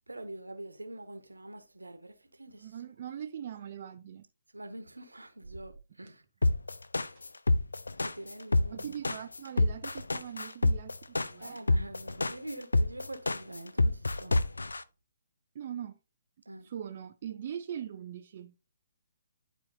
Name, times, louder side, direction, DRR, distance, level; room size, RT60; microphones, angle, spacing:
voice 1, 0.1-2.7 4.5-6.2 8.0-8.9 11.4-14.4 16.5-16.7, right 1 dB, 85° right, 1.3 m, -45 dB
voice 2, 2.5-4.3 8.7-11.6 15.5-16.0 16.6-18.6, right 9 dB, 45° right, 0.6 m, -41 dB
sound 1, 6.4-14.8, left 2 dB, 75° left, 0.5 m, -27 dB
11.5 x 4.5 x 2.8 m
figure-of-eight pair, 135°, 0 cm